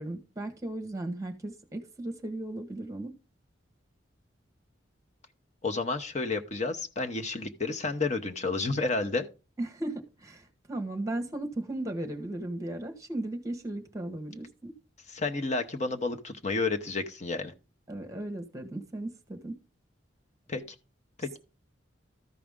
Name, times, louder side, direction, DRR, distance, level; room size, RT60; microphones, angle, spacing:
voice 1, 0.0-3.1 9.6-14.7 17.9-19.6, right 1 dB, 15° right, 1.2 m, -36 dB
voice 2, 5.6-9.3 15.1-17.5 20.5-20.6 21.2-21.4, left 3 dB, 35° left, 0.9 m, -31 dB
13.5 x 5.0 x 3.6 m
head